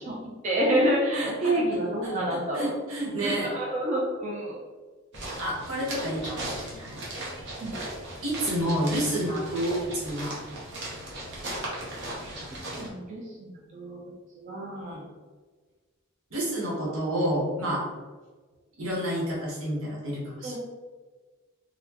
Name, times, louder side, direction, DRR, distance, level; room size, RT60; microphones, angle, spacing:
voice 1, 0.2-2.7 3.2-4.5 7.6-7.8 12.8-14.0 14.4-15.0 20.4-20.6, right 1 dB, 35° right, -4 dB, 0.6 m, -28 dB
voice 2, 1.1-1.6 2.0-3.5 5.4-7.0 8.2-10.3 14.9-15.0 16.3-17.8 18.8-20.6, right 1 dB, 80° right, -4 dB, 1.2 m, -29 dB
sound 1, 5.1-12.9, right 1 dB, 55° right, 1.0 m, -37 dB
4.1 x 2.2 x 2.9 m, 1.4 s
head